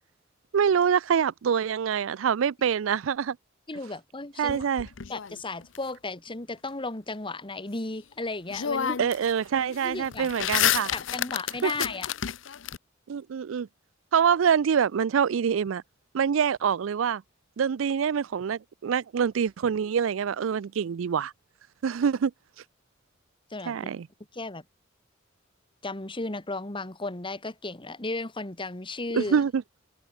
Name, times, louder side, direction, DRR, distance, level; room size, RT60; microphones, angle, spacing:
voice 1, 0.5-3.4 4.4-4.9 9.0-10.9 11.6-11.7 13.1-13.7 14.1-15.8 16.1-17.2 17.6-21.3 21.8-22.3 23.7-24.1 29.1-29.6, right 7 dB, 90° right, 0.4 m, -25 dB
voice 2, 3.7-4.6 5.1-9.0 9.8-10.3 10.9-12.1 23.5-23.9 24.3-24.6 25.8-29.4, left 2 dB, 25° left, 1.9 m, -34 dB
sound 1, 4.5-5.8 8.0-8.1 8.5-9.3 9.6-12.8, left 9 dB, 70° left, 0.7 m, -29 dB
head